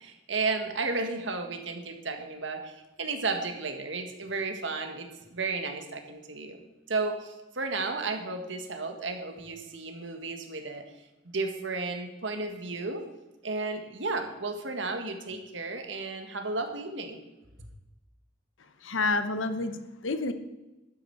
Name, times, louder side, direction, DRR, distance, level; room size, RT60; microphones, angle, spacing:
voice 1, 0.0-6.6 6.9-10.8 11.3-13.1 13.4-17.2, right 3 dB, 75° right, 6 dB, 1.7 m, -33 dB
voice 2, 18.8-20.3, left 3 dB, 85° left, 10 dB, 1.0 m, -29 dB
12.5 x 10.0 x 4.8 m, 1.0 s
head